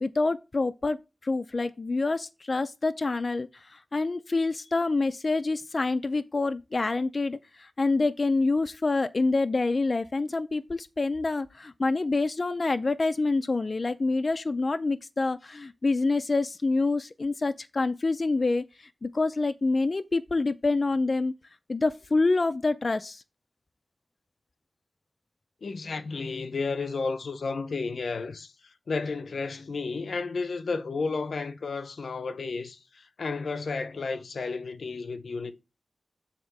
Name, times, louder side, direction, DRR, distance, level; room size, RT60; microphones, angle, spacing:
voice 1, 0.0-21.3 21.7-23.2, left 3 dB, 50° left, 0.4 m, -27 dB
voice 2, 25.6-35.5, left 4 dB, 85° left, 0.7 m, -32 dB
7.2 x 3.6 x 6.0 m
wide cardioid pair, 70°, 0 cm